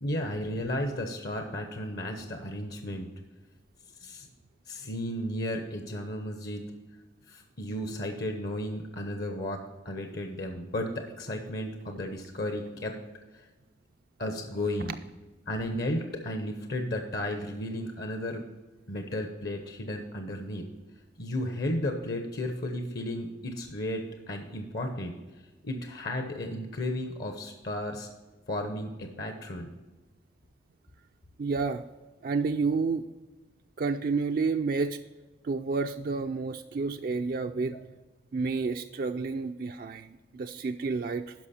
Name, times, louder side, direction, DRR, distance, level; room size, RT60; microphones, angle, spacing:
voice 1, 0.0-3.1 4.0-4.3 4.7-6.7 7.3-13.0 14.2-15.0 15.5-18.5 18.9-20.7 21.2-25.1 25.6-28.1 28.5-29.7 37.7-37.8, left 1 dB, 55° left, 5 dB, 0.9 m, -34 dB
voice 2, 31.4-31.8 32.2-33.1 33.8-35.0 35.4-37.8 38.3-41.3, right 4 dB, 50° right, 6 dB, 0.3 m, -30 dB
12.0 x 5.4 x 4.3 m, 1.2 s
head